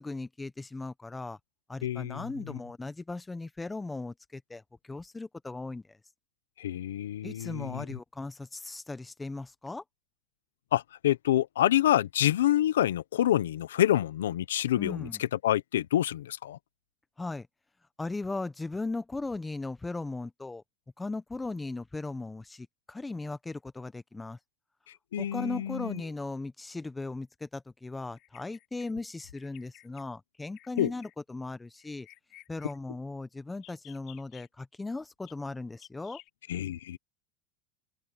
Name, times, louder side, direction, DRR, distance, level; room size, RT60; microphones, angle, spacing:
voice 1, 0.0-1.4 1.7-6.0 7.2-9.8 14.7-15.2 17.2-17.5 18.0-20.6 21.0-24.4 25.2-32.1 32.5-36.2, left 3 dB, 10° left, 1.1 m, -38 dB
voice 2, 1.8-2.6 6.6-8.0 10.7-16.6 25.1-26.0 30.8-30.9 36.5-37.0, left 12 dB, 90° left, 0.9 m, -27 dB
Bird vocalization bird call bird song, 28.2-28.9 29.4-30.0 30.5-31.1 31.8-32.8 33.5-34.5 35.3-35.4 35.8-36.3, left 18 dB, 55° left, 4.0 m, -54 dB
hypercardioid pair, 100°, 0 cm